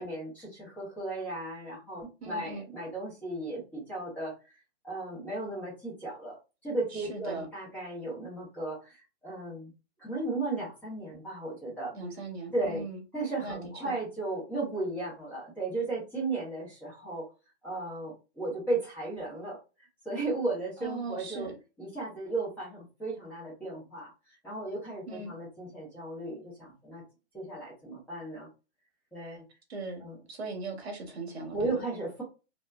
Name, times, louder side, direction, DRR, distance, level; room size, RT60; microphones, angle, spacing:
voice 1, 0.0-4.3 4.8-6.4 6.6-9.7 10.0-11.9 12.5-12.8 13.1-17.3 17.6-19.6 20.0-21.5 21.8-24.1 24.4-27.0 27.3-28.5 29.1-29.4 30.0-30.2 31.5-32.2, right 2 dB, 5° left, 1.2 m, -35 dB
voice 2, 2.2-2.6 6.9-7.5 11.9-13.0 13.4-13.9 20.8-21.5 25.1-25.3 29.7-31.8, right 3 dB, 65° right, 1.2 m, -39 dB
3.0 x 2.9 x 2.3 m
hypercardioid pair, 165°, 34 cm